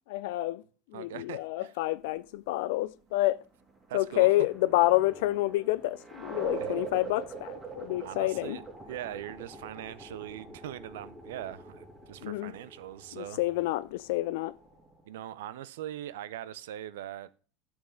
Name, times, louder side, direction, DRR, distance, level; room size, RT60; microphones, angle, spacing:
voice 1, 0.1-0.6 0.9-3.4 3.9-8.6 12.2-12.5 13.1-14.5, left 17 dB, 75° left, 0.3 m, -28 dB
voice 2, 0.9-1.7 3.9-4.5 6.6-6.7 8.0-13.4 15.0-17.3, right 12 dB, 80° right, 0.5 m, -41 dB
sound 1, 3.7-15.1, right 4 dB, 25° right, 2.6 m, -44 dB
9.4 x 6.2 x 3.7 m
hypercardioid pair, 90°, 0 cm